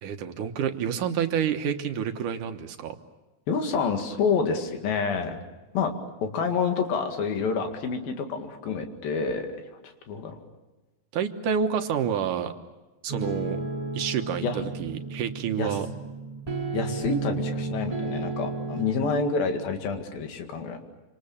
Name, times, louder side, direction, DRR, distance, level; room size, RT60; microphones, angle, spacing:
voice 1, 0.0-3.0 11.1-12.5 13.0-13.6 13.9-15.9, right 8 dB, 70° right, 7 dB, 2.6 m, -28 dB
voice 2, 3.5-5.4 5.7-5.9 6.2-9.5 10.1-10.4 14.4-14.6 15.6-15.8 16.7-20.8, left 5 dB, 90° left, 5 dB, 3.9 m, -28 dB
sound 1, 13.1-18.9, right 3 dB, 50° right, 0.4 m, -33 dB
27.0 x 26.5 x 7.2 m, 1.1 s
omnidirectional pair, 4.0 m